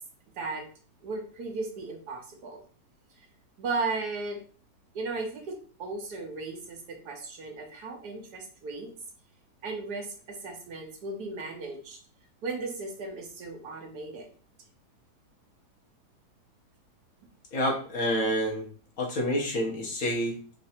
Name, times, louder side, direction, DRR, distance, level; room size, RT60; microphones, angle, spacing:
voice 1, 1.0-2.6 3.6-4.4 5.0-8.9 9.6-12.0 12.4-14.3, right 3 dB, 80° right, 2 dB, 1.6 m, -36 dB
voice 2, 17.5-18.7 19.0-20.4, equal, 60° left, -1 dB, 1.6 m, -28 dB
4.6 x 2.6 x 4.3 m, 0.41 s
omnidirectional pair, 1.7 m